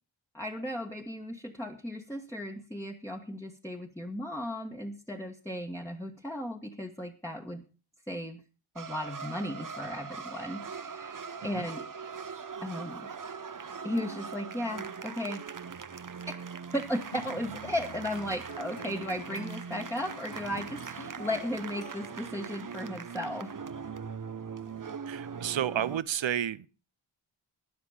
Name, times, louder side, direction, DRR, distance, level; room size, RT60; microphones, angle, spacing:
voice 1, 0.3-7.6 8.1-8.4 8.7-11.9 12.6-13.1 13.8-15.4 16.3-16.4 16.7-23.5, left 1 dB, 5° left, 1.5 m, -36 dB
sound 1, 8.8-26.0, right 6 dB, 40° right, 0.8 m, -41 dB
sound 2, 17.1-22.5, left 3 dB, 55° left, 1.6 m, -49 dB
voice 2, 25.1-26.7, right 10 dB, 65° right, 0.7 m, -31 dB
13.5 x 9.7 x 5.0 m
cardioid pair, 45°, 50 cm